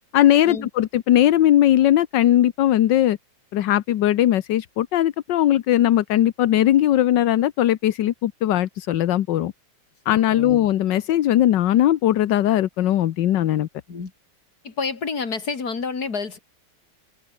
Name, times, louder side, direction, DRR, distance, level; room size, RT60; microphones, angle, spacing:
voice 1, 0.1-3.2 3.5-9.5 10.1-13.7, left 12 dB, 70° left, 1.5 m, -19 dB
voice 2, 10.1-10.6 13.9-14.1 14.6-16.4, left 5 dB, 50° left, 3.2 m, -29 dB
open air
omnidirectional pair, 2.1 m